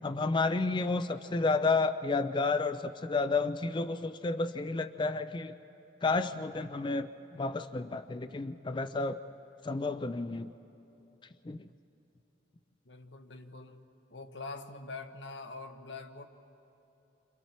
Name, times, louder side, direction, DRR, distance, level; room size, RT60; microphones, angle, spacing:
voice 1, 0.0-5.5 6.0-7.1 7.3-9.2 9.6-10.5 11.4-11.7, left 3 dB, 25° left, 10 dB, 0.4 m, -31 dB
voice 2, 12.8-13.8 14.1-16.3, left 3 dB, 90° left, 6 dB, 1.2 m, -44 dB
30.0 x 25.5 x 4.3 m, 2.9 s
head